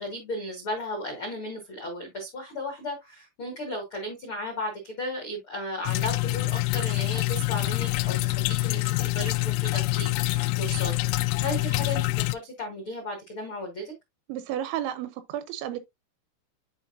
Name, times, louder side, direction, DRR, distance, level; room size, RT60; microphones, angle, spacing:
voice 1, 0.0-13.9, left 1 dB, 70° left, 1.2 m, -35 dB
sound 1, 5.9-12.3, left 21 dB, 90° left, 3.1 m, -26 dB
voice 2, 14.3-15.8, right 11 dB, 80° right, 2.8 m, -32 dB
10.5 x 4.3 x 2.5 m
omnidirectional pair, 5.6 m